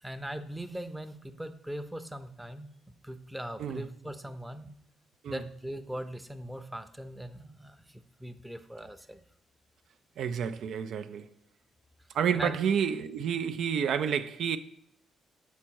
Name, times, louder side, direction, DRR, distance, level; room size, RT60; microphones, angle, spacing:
voice 1, 0.0-2.7 3.0-4.7 5.3-9.2 12.3-12.5, right 1 dB, 5° right, 0.6 m, -40 dB
voice 2, 10.2-11.3 12.1-14.6, right 7 dB, 70° right, 0.4 m, -29 dB
7.2 x 4.4 x 4.5 m
cardioid pair, 90°, 0 cm